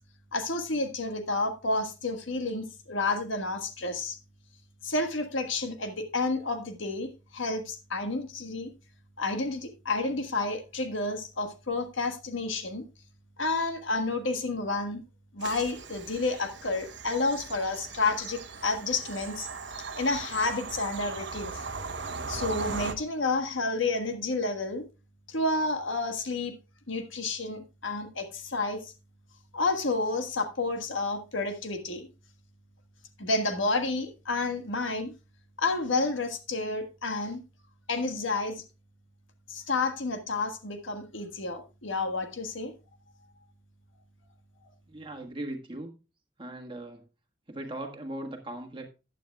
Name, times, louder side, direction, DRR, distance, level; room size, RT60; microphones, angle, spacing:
voice 1, 0.3-4.2 4.8-8.7 9.2-12.8 13.4-15.0 15.3-19.5 19.8-21.6 22.3-24.8 25.3-26.5 26.9-28.9 29.5-32.1 33.2-35.1 35.6-37.4 37.9-38.6 39.5-42.7, left 3 dB, 75° left, 7 dB, 1.5 m, -30 dB
Bird vocalization bird call bird song / Train, 15.4-22.9, right 4 dB, 60° right, 1.0 m, -39 dB
voice 2, 44.9-46.0 46.4-47.0 47.5-48.9, right 1 dB, 25° right, 3 dB, 1.5 m, -39 dB
14.5 x 9.0 x 2.3 m, 0.29 s
head